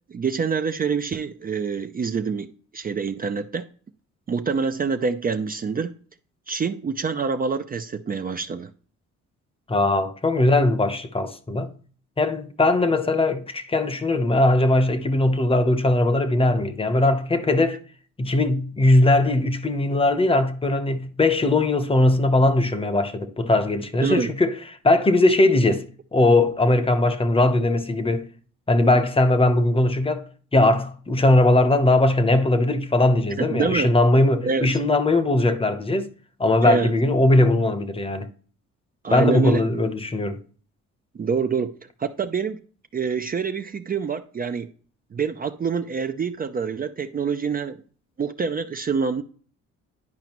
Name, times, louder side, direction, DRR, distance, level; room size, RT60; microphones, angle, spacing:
voice 1, 0.1-2.5 2.7-3.6 4.3-5.9 6.5-8.7 24.0-24.3 33.4-33.9 34.4-34.7 36.6-36.9 39.0-39.6 41.1-42.6 42.9-44.7 45.1-47.8 48.2-49.2, right 5 dB, 30° right, 0.5 m, -26 dB
voice 2, 9.7-11.7 12.2-17.8 18.2-24.5 24.8-25.8 26.1-28.3 28.7-30.2 30.5-36.1 36.4-38.3 39.1-40.4, left 2 dB, 20° left, 0.9 m, -20 dB
11.0 x 4.9 x 3.0 m
cardioid pair, 90°, 30 cm